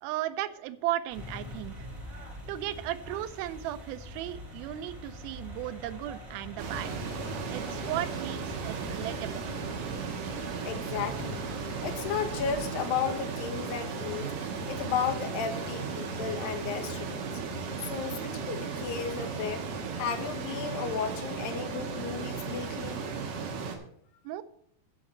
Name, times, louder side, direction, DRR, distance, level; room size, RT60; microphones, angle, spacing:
voice 1, 0.0-1.9 2.5-6.9 7.5-9.4 24.2-24.4, right 13 dB, 90° right, 13 dB, 2.5 m, -35 dB
sound 1, 1.1-12.6, left 1 dB, 20° right, 3.5 m, -44 dB
sound 2, 6.6-23.8, right 5 dB, 65° right, 2.9 m, -35 dB
voice 2, 10.6-11.5 11.8-14.3 14.7-17.3 17.8-19.7 20.0-23.0, left 7 dB, 75° left, 5 dB, 2.7 m, -34 dB
12.0 x 4.9 x 6.7 m, 0.69 s
omnidirectional pair, 4.2 m